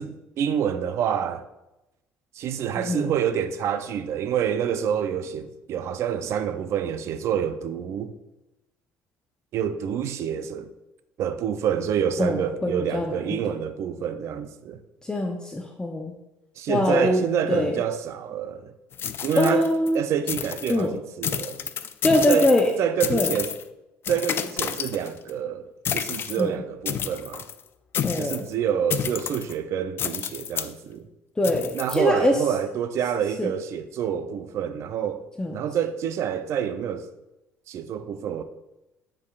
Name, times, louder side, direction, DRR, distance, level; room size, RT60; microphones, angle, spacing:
voice 1, 0.0-1.4 2.3-8.1 9.5-10.7 11.2-14.8 16.6-18.7 19.2-19.7 19.9-21.6 22.3-22.5 22.8-23.5 24.1-27.5 28.2-31.1 31.7-37.1 37.7-38.4, right 8 dB, 60° right, 0.5 m, -27 dB
voice 2, 2.7-3.1 12.2-13.4 15.0-16.1 16.7-17.7 19.4-20.0 20.7-21.0 22.0-22.7 23.1-23.3 26.4-26.5 28.0-28.5 31.4-32.3 33.4-33.5 35.4-35.5, left 1 dB, 15° left, 0.7 m, -23 dB
sound 1, 18.9-19.9 20.3-20.8 21.2-22.7 23.0-23.6 24.0-25.3 25.8-26.4 26.8-27.5 27.9-28.5 28.9-29.5 30.0-30.7 31.4-32.0, left 8 dB, 45° left, 0.4 m, -30 dB
9.4 x 4.8 x 2.5 m
supercardioid pair, 90°, 5 cm